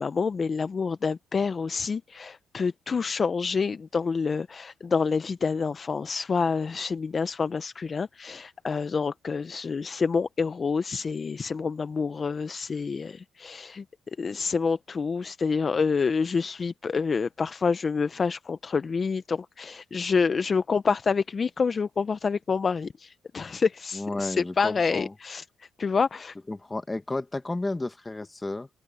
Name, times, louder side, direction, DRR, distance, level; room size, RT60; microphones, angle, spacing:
voice 1, 0.0-13.8 14.2-26.4, left 5 dB, 40° left, 0.6 m, -27 dB
voice 2, 23.9-25.1 26.5-28.7, left 2 dB, 15° left, 1.8 m, -32 dB
open air
cardioid pair, 90°, 0 cm